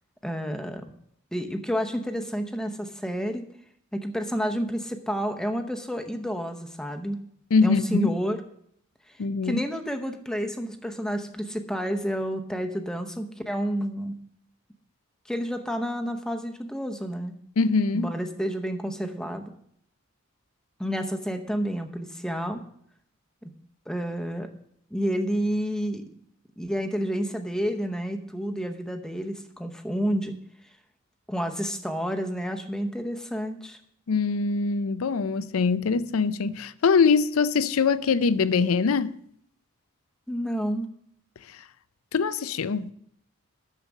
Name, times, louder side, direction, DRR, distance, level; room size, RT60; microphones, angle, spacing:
voice 1, 0.2-0.8 1.3-3.5 3.9-7.2 7.6-8.4 9.4-14.1 15.3-17.3 17.9-19.4 20.8-22.6 23.4-23.5 23.9-24.5 24.9-26.0 26.6-30.4 31.3-33.8 40.3-40.9, equal, 5° left, 0.7 m, -30 dB
voice 2, 7.5-8.1 9.2-9.6 17.6-18.1 34.1-39.2 42.1-42.9, left 5 dB, 85° left, 0.5 m, -23 dB
10.5 x 6.6 x 6.1 m
head